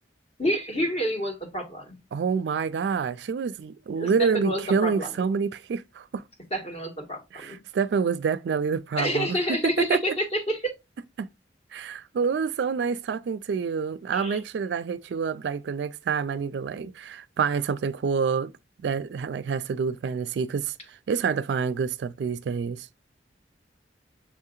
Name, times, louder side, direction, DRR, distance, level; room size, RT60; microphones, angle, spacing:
voice 1, 0.4-2.0 4.0-5.3 6.5-7.6 9.0-10.7 14.1-14.4, equal, 35° left, 1.4 m, -29 dB
voice 2, 2.1-6.2 7.3-10.2 11.2-11.3 11.7-18.5 18.8-22.9, right 6 dB, 65° right, 0.3 m, -27 dB
7.0 x 2.8 x 2.3 m
head